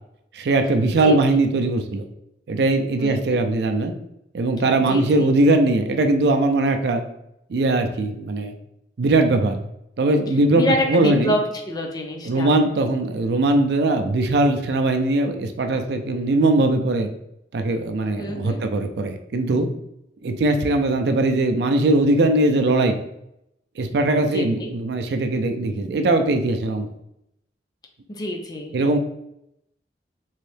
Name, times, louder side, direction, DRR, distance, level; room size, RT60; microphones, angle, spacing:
voice 1, 0.3-2.0 2.5-3.9 4.3-7.0 7.5-8.5 9.0-9.6 10.0-11.3 12.2-17.1 17.5-19.7 20.2-23.0 23.8-26.9 28.7-29.0, right 2 dB, 70° right, 6 dB, 0.4 m, -20 dB
voice 2, 3.0-3.4 4.9-5.3 10.5-12.6 18.2-18.6 24.3-24.7 28.1-28.8, left 1 dB, 20° left, 2 dB, 0.4 m, -27 dB
3.1 x 2.7 x 3.3 m, 0.80 s
head